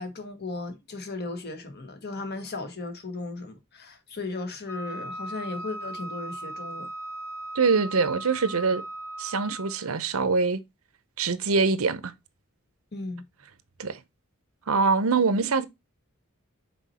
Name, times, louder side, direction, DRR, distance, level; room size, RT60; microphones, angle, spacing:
voice 1, 0.0-6.9 12.9-13.2, left 3 dB, 50° left, 1.5 m, -36 dB
Wind instrument woodwind instrument, 4.7-9.9, right 1 dB, 10° left, 1.5 m, -38 dB
voice 2, 7.5-8.8 9.2-10.6 11.2-12.1 13.8-14.0 14.7-15.7, right 4 dB, 85° right, 0.8 m, -24 dB
6.2 x 4.3 x 4.2 m
head